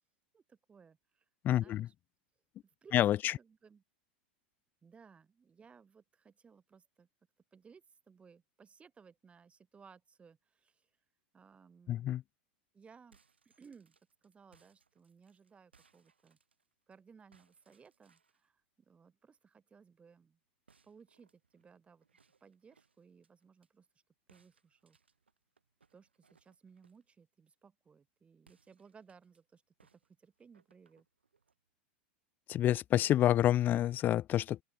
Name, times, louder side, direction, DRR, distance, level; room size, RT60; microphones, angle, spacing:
voice 1, 0.3-1.3 1.6-1.9 2.8-3.0 3.3-3.8 4.8-7.1 7.5-10.9 11.3-12.2 12.7-13.2 13.4-16.4 16.9-20.4 20.8-22.1 22.4-23.9 24.3-25.0 25.9-31.1, right 6 dB, 20° right, 4.1 m, -61 dB
voice 2, 1.4-1.9 2.9-3.3 11.9-12.2 32.5-34.6, left 12 dB, 35° left, 0.4 m, -28 dB
sound 1, 12.9-17.0 17.3-18.5 20.7-23.7 24.3-27.1 28.4-29.4 29.8-31.6, right 5 dB, 90° right, 7.7 m, -71 dB
open air
hypercardioid pair, 95°, 6 cm